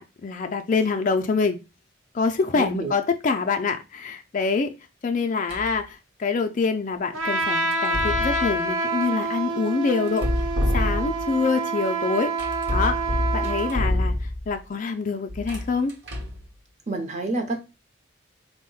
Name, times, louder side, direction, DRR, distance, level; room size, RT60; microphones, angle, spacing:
voice 1, 0.0-1.6 2.1-4.7 5.0-10.3 10.7-12.3 12.7-13.0 13.3-15.9, left 4 dB, 40° left, 0.3 m, -25 dB
voice 2, 2.5-2.9 16.9-17.6, right 2 dB, 35° right, 0.6 m, -28 dB
sound 1, 5.5-5.8 7.7-8.6 10.1-11.4 12.4-14.6 15.3-16.4, left 1 dB, 55° right, 0.9 m, -27 dB
Trumpet, 7.1-13.8, right 2 dB, 80° right, 0.8 m, -27 dB
4.2 x 2.1 x 3.8 m
head